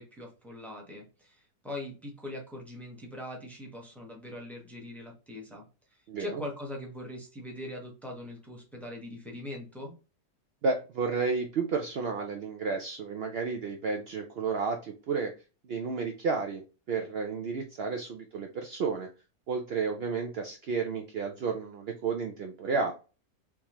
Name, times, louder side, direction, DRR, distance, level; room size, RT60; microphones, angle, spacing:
voice 1, 0.0-5.6 5.9-9.9, left 1 dB, ahead, 0 dB, 0.7 m, -41 dB
voice 2, 6.1-6.4 10.6-15.3 15.6-16.6 16.9-19.1 19.5-22.9, right 4 dB, 80° right, 3 dB, 0.5 m, -31 dB
3.5 x 3.0 x 3.0 m, 0.32 s
omnidirectional pair, 1.7 m